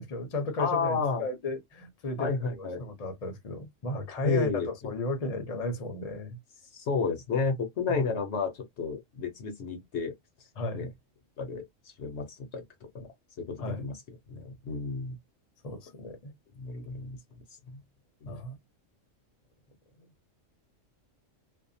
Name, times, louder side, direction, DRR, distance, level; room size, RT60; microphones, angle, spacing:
voice 1, 0.0-6.4 7.9-8.1 10.6-10.8 13.6-13.8 15.6-16.3 18.3-18.6, left 2 dB, 35° left, 0.7 m, -34 dB
voice 2, 0.6-1.2 2.2-2.9 4.2-4.9 6.7-10.1 10.7-10.9 11.4-12.6 12.9-13.1 13.4-14.0 14.3-15.2 16.6-17.2 17.7-17.8 18.2-18.5, left 5 dB, 65° left, 0.9 m, -31 dB
2.6 x 2.1 x 2.6 m
omnidirectional pair, 1.4 m